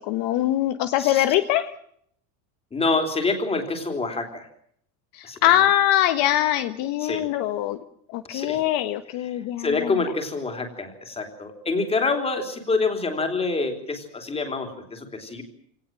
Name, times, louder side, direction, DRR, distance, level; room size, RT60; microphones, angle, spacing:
voice 1, 0.0-1.7 5.1-7.8 8.1-10.0, left 12 dB, 50° left, 9 dB, 1.4 m, -23 dB
voice 2, 2.7-4.5 5.2-5.4 7.0-7.3 8.3-8.6 9.6-15.4, left 3 dB, 15° left, 5 dB, 3.6 m, -26 dB
27.5 x 18.5 x 7.7 m, 0.68 s
cardioid pair, 170°, 43 cm